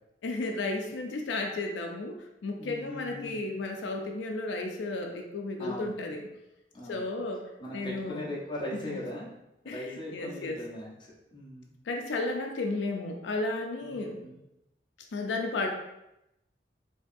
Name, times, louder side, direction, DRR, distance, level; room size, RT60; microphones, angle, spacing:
voice 1, 0.2-6.3 6.9-7.4 7.7-8.2 8.7-9.0 9.7-10.6 11.9-14.3 15.1-15.7, left 2 dB, 90° left, 3 dB, 0.4 m, -33 dB
voice 2, 2.6-3.4 5.6-5.9 6.7-7.0 7.6-9.3 9.6-10.9 11.3-11.7 13.8-14.4, left 1 dB, 25° left, -5 dB, 0.9 m, -39 dB
4.6 x 2.7 x 2.6 m, 0.88 s
head